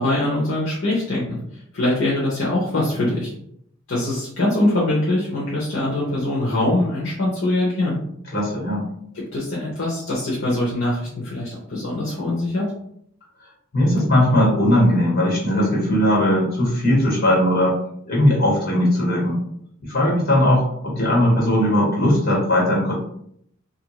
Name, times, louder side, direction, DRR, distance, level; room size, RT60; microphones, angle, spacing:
voice 1, 0.0-3.3 3.9-8.0 9.3-12.6, left 1 dB, 70° left, -6 dB, 0.8 m, -23 dB
voice 2, 8.3-8.9 13.7-17.8 18.0-19.4 19.8-22.9, left 1 dB, 50° left, -4 dB, 1.4 m, -18 dB
2.7 x 2.5 x 3.0 m, 0.70 s
head